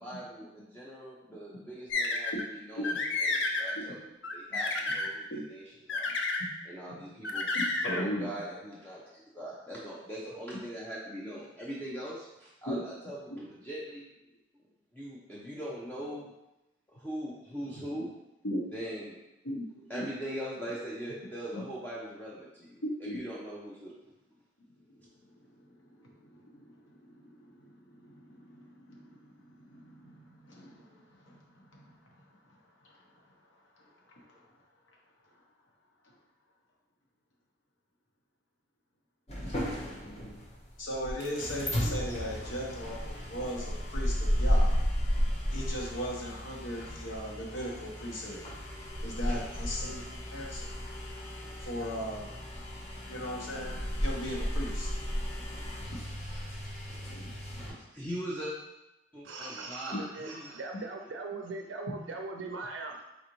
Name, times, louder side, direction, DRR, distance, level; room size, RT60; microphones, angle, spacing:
voice 1, 0.0-2.9 3.2-4.0 4.3-6.1 6.7-7.5 7.8-14.0 14.9-16.3 16.9-18.1 18.7-19.2 19.9-23.9 57.6-58.5 59.1-60.5, equal, 10° left, -6 dB, 0.6 m, -41 dB
sound 1, 1.9-2.4 2.8-3.8 4.2-5.1 5.9-6.5 7.2-8.0, left 3 dB, 70° left, 0.5 m, -30 dB
voice 2, 7.5-8.3 12.7-12.8 17.6-18.1 18.4-18.6 19.4-19.6 19.9-20.0 21.5-21.6 22.8-23.2 25.6-25.7 26.0-32.0 32.8-32.9 33.8-34.4 39.4-39.5 40.8-44.7 45.5-48.5 49.0-50.0 50.3-50.7 51.6-52.3 53.1-54.9 57.0-57.3, equal, 90° left, -2 dB, 1.1 m, -38 dB
sound 2, 39.3-57.7, equal, 35° left, 0.9 m, -33 dB
voice 3, 59.2-63.0, right 3 dB, 80° right, 2 dB, 0.4 m, -40 dB
4.1 x 3.9 x 3.0 m, 0.96 s
head